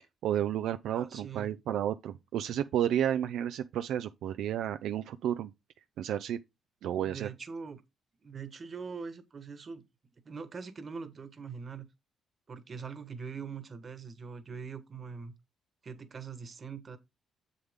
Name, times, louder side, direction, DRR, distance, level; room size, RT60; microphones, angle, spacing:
voice 1, 0.2-5.5 6.0-6.4 6.8-7.3, right 10 dB, 80° right, 0.4 m, -31 dB
voice 2, 0.9-1.5 7.0-7.8 8.2-9.8 10.2-11.9 12.5-15.3 15.8-17.0, right 5 dB, 40° right, 1.4 m, -42 dB
7.2 x 6.8 x 3.6 m
cardioid pair, 90°, 0 cm